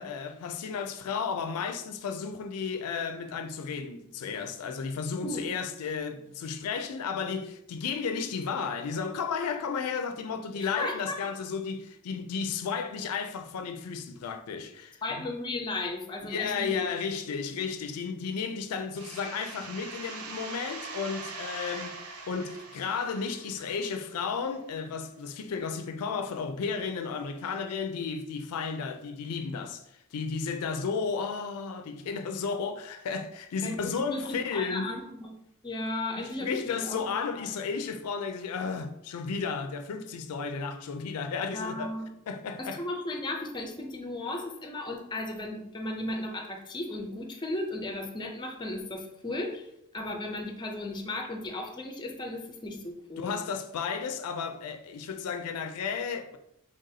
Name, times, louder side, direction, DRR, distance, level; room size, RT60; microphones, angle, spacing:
voice 1, 0.0-15.3 16.3-22.0 22.3-29.8 30.1-34.9 36.4-41.9 42.3-42.8 53.2-56.4, left 5 dB, 85° left, 0.4 m, -33 dB
voice 2, 10.6-11.3 15.0-16.8 33.6-35.4 35.6-37.5 41.5-42.1 42.6-53.3, left 2 dB, 20° left, 0.5 m, -35 dB
sound 1, 18.9-24.4, right 4 dB, 75° right, 0.6 m, -42 dB
3.9 x 3.4 x 2.7 m
head